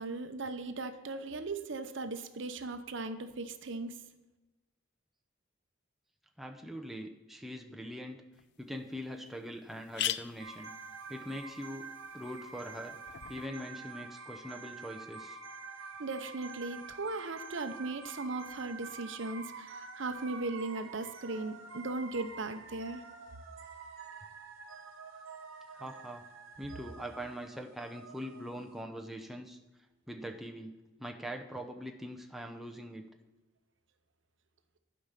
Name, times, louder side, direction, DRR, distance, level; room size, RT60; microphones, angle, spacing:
voice 1, 0.0-4.0 16.0-23.0, right 3 dB, 65° right, 9 dB, 0.7 m, -38 dB
voice 2, 6.4-8.2 8.6-10.7 11.1-11.9 12.1-13.0 13.3-15.4 25.7-26.2 26.6-29.6 30.1-33.0, equal, ahead, 2 dB, 0.6 m, -42 dB
sound 1, 8.4-8.5 9.0-9.1 9.3-9.4 9.7-13.5, left 12 dB, 55° left, 0.4 m, -41 dB
sound 2, 10.4-28.7, right 4 dB, 85° right, 1.2 m, -47 dB
11.5 x 5.1 x 5.8 m, 1.1 s
head